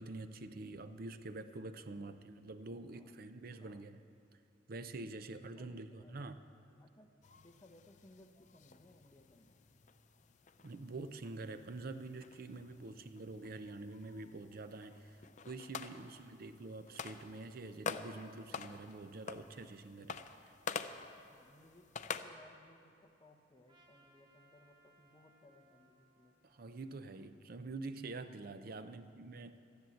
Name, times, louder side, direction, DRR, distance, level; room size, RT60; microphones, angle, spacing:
voice 1, 0.0-4.0 4.7-6.4 10.6-20.6 26.4-29.6, right 2 dB, 50° right, 11 dB, 0.5 m, -46 dB
voice 2, 1.9-2.2 2.8-3.2 3.5-3.9 5.5-6.3 6.8-9.6 12.8-13.0 15.8-16.1 21.2-26.3 28.7-29.1, left 1 dB, 20° left, 5 dB, 0.8 m, -63 dB
sound 1, 7.2-22.2, left 5 dB, 40° left, 0.5 m, -48 dB
Trumpet, 23.7-28.0, right 2 dB, 25° right, 1.1 m, -70 dB
14.0 x 10.5 x 7.8 m, 2.7 s
head